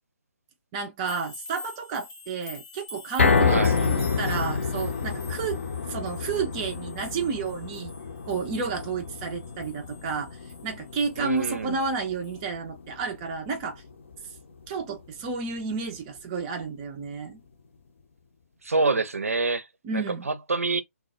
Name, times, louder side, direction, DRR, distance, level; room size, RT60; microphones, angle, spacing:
voice 1, 0.7-5.6 5.9-7.9 8.2-10.4 10.6-13.8 14.7-17.4 19.8-20.3, right 5 dB, 20° right, 0.4 m, -31 dB
sound 1, 1.0-12.0 12.2-12.4, left 4 dB, 10° left, 0.7 m, -47 dB
sound 2, 3.2-15.4 15.8-15.9 16.4-16.5, left 5 dB, 55° left, 0.5 m, -29 dB
voice 2, 11.2-11.8 18.6-19.7 19.9-20.8, right 3 dB, 70° right, 0.6 m, -26 dB
2.2 x 2.1 x 2.8 m
figure-of-eight pair, 140°, 8 cm